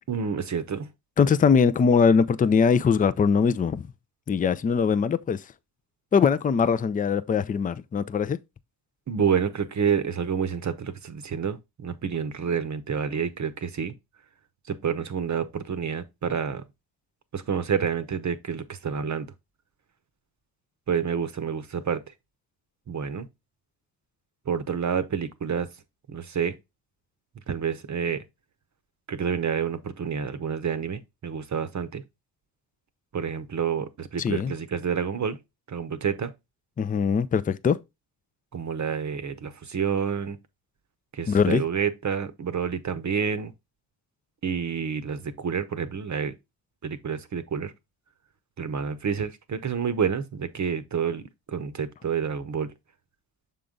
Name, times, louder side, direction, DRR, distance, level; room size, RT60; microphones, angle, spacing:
voice 1, 0.1-0.9 9.1-13.9 14.7-16.6 17.3-19.3 20.9-22.0 22.9-23.3 24.5-25.7 26.1-26.6 27.5-28.2 29.1-32.0 33.1-35.4 35.7-36.3 38.5-40.4 41.1-43.5 44.4-46.3 46.8-47.7 48.6-51.2 51.5-52.7, right 7 dB, 35° right, 0.8 m, -28 dB
voice 2, 1.2-3.9 4.3-5.4 6.1-8.4 34.2-34.5 36.8-37.8 41.3-41.6, left 6 dB, 20° left, 0.4 m, -21 dB
6.7 x 3.8 x 3.7 m
hypercardioid pair, 50°, 50 cm